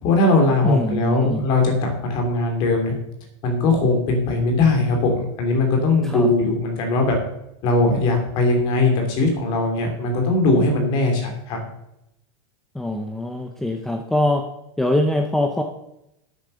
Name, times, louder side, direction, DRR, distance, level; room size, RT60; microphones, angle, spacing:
voice 1, 0.0-2.9 3.4-7.2 7.6-11.6, left 2 dB, 30° left, 2 dB, 3.2 m, -20 dB
voice 2, 0.6-1.5 6.0-6.3 12.7-14.4 14.8-15.6, left 1 dB, ahead, 4 dB, 0.6 m, -23 dB
10.0 x 8.5 x 6.8 m, 0.82 s
supercardioid pair, 175°, 15 cm